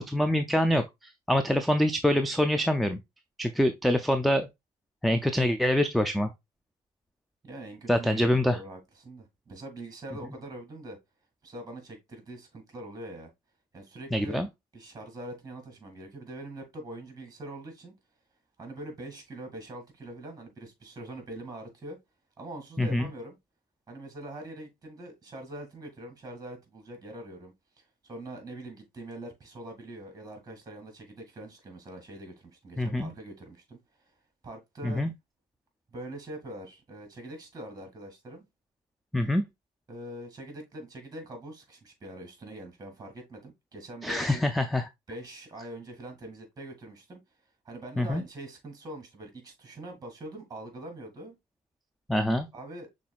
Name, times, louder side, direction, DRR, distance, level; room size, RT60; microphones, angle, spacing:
voice 1, 0.0-3.0 3.4-4.5 5.0-6.3 7.9-8.6 14.1-14.5 22.8-23.1 32.8-33.1 34.8-35.1 39.1-39.4 44.0-44.9 48.0-48.2 52.1-52.5, left 1 dB, ahead, 0.4 m, -25 dB
voice 2, 7.4-11.0 11.4-13.3 13.7-14.4 14.7-17.9 18.6-22.0 22.4-23.4 23.9-33.8 34.1-34.2 34.4-35.0 35.9-38.4 39.9-44.4 45.1-47.2 47.7-51.3 52.5-52.9, right 1 dB, 20° right, 2.3 m, -43 dB
6.0 x 3.7 x 2.3 m
cardioid pair, 110°, 17 cm